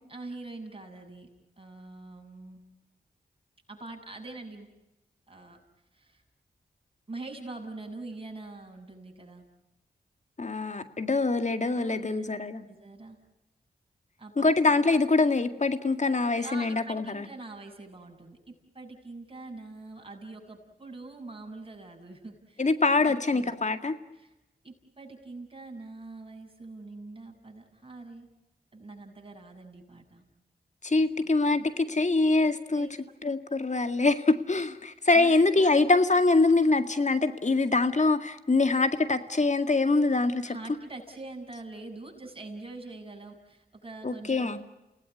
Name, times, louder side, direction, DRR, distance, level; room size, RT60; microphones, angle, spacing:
voice 1, 0.1-1.3 1.6-2.6 3.7-4.7 5.3-5.6 5.9-6.2 7.1-9.4 11.7-12.3 12.6-13.2 14.2-14.5 16.4-23.5 24.1-24.3 24.6-28.3 28.7-30.2 31.6-31.7 31.9-32.0 32.4-32.9 34.9-35.9 40.4-44.6, right 2 dB, 30° right, 1 dB, 7.4 m, -44 dB
voice 2, 10.4-12.6 14.4-17.2 22.6-23.9 30.8-32.9 33.2-40.6 44.0-44.6, left 3 dB, 45° left, 9 dB, 2.1 m, -24 dB
29.0 x 18.0 x 9.7 m, 0.94 s
cardioid pair, 40°, 17 cm